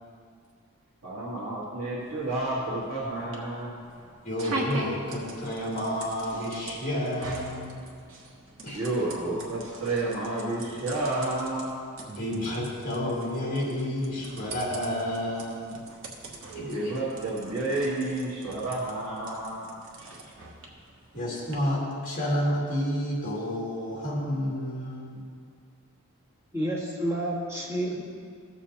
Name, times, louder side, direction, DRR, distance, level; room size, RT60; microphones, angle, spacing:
voice 1, 1.0-3.7 8.7-11.7 16.6-19.7 20.0-20.1, right 2 dB, 75° right, -7 dB, 1.7 m, -30 dB
sound 1, 2.0-21.5, right 2 dB, 60° right, 1.1 m, -42 dB
voice 2, 4.2-7.8 8.6-8.9 12.1-15.9 16.5-16.9 21.1-25.2, equal, 35° left, -5 dB, 2.3 m, -30 dB
voice 3, 26.5-28.0, right 1 dB, 10° right, -5 dB, 1.5 m, -29 dB
15.0 x 7.2 x 2.9 m, 2.2 s
head